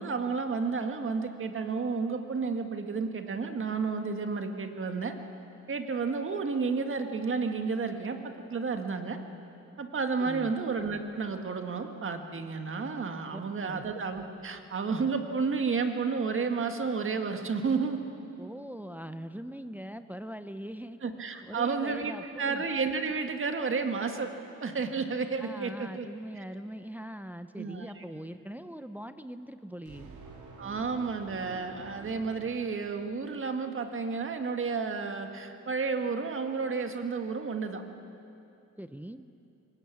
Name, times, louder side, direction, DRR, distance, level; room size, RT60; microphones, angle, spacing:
voice 1, 0.0-5.1 5.7-8.2 8.5-9.2 9.8-18.0 21.0-24.3 24.6-26.1 26.4-26.5 27.6-28.0 30.6-37.8, right 4 dB, 45° right, 6 dB, 1.7 m, -31 dB
voice 2, 10.2-10.5 13.3-13.9 18.4-21.0 21.4-22.6 25.4-30.1 38.8-39.3, equal, 5° right, 10 dB, 0.6 m, -42 dB
sound 1, 29.8-33.3, right 3 dB, 90° right, 3.6 m, -49 dB
23.0 x 19.5 x 8.4 m, 2.8 s
wide cardioid pair, 140°, 30 cm